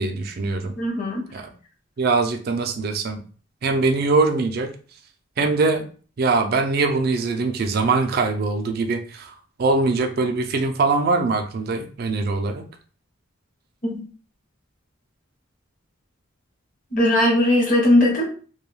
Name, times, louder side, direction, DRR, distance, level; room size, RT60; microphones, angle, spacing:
voice 1, 0.0-0.7 1.3-1.5 2.0-3.2 3.6-4.7 5.4-5.8 6.2-9.3 9.6-12.6, right 3 dB, 45° right, 5 dB, 0.4 m, -22 dB
voice 2, 0.8-1.2 13.8-14.0 16.9-18.2, left 1 dB, 40° left, 0 dB, 0.7 m, -18 dB
2.2 x 2.2 x 3.1 m, 0.40 s
head